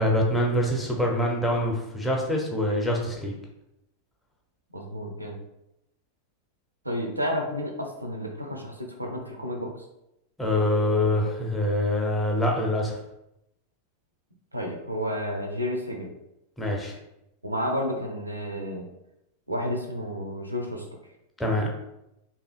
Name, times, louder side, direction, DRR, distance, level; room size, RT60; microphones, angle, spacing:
voice 1, 0.0-3.3 10.4-13.0 16.6-16.9 21.4-21.7, left 1 dB, 5° left, -1 dB, 0.5 m, -25 dB
voice 2, 4.7-5.4 6.8-9.9 14.5-16.1 17.4-18.9 19.5-20.9, equal, 85° right, 2 dB, 0.4 m, -31 dB
2.7 x 2.4 x 2.4 m, 0.86 s
figure-of-eight pair, 90°, 0 cm